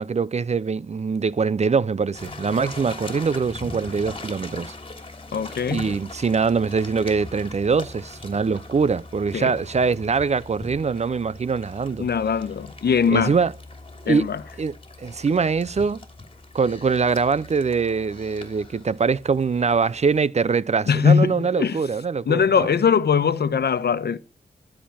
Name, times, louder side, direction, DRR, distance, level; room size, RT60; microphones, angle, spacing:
voice 1, 0.0-4.7 5.7-12.1 13.1-13.5 14.1-14.3 14.6-14.7 15.0-16.0 16.5-22.7, right 5 dB, 40° right, 0.5 m, -23 dB
sound 1, 2.1-20.2, left 2 dB, 30° left, 2.9 m, -41 dB
voice 2, 5.3-5.9 9.3-9.6 12.0-13.4 14.1-14.4 20.9-21.8 22.2-24.2, left 6 dB, 75° left, 1.1 m, -21 dB
12.5 x 6.6 x 5.6 m
wide cardioid pair, 80°, 17 cm